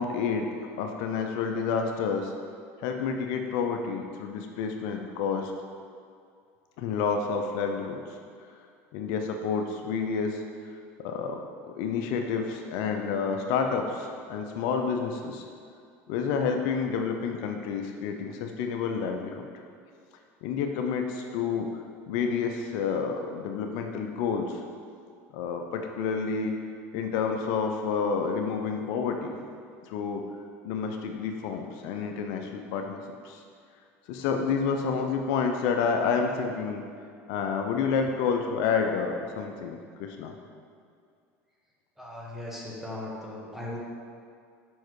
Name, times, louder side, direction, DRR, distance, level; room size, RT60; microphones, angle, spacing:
voice 1, 0.0-2.3 2.8-5.5 6.8-8.0 8.9-10.4 11.0-11.4 11.7-15.4 16.1-19.5 20.4-21.7 22.1-24.6 25.3-26.5 26.9-29.4 29.9-30.2 30.6-33.4 34.1-36.8 37.3-40.3, left 5 dB, 70° left, 4 dB, 0.5 m, -29 dB
voice 2, 42.0-43.8, left 1 dB, 5° right, -4 dB, 1.4 m, -38 dB
5.3 x 4.6 x 4.7 m, 2.3 s
supercardioid pair, 95°, 7 cm